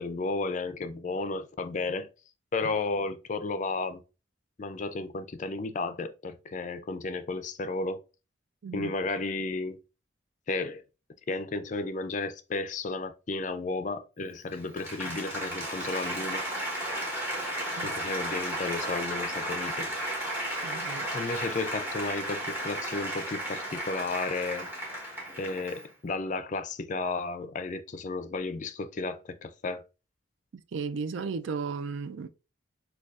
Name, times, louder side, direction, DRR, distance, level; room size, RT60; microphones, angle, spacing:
voice 1, 0.0-2.1 2.5-4.0 4.6-8.0 8.7-9.8 10.5-10.8 11.3-16.5 17.8-19.9 21.1-24.7 25.4-29.8, left 3 dB, 40° left, 0.4 m, -33 dB
Applause, 14.4-25.9, right 1 dB, 10° right, 1.1 m, -34 dB
voice 2, 17.8-18.1 20.6-21.1 30.5-32.3, right 5 dB, 70° right, 0.4 m, -35 dB
6.4 x 2.3 x 2.4 m
head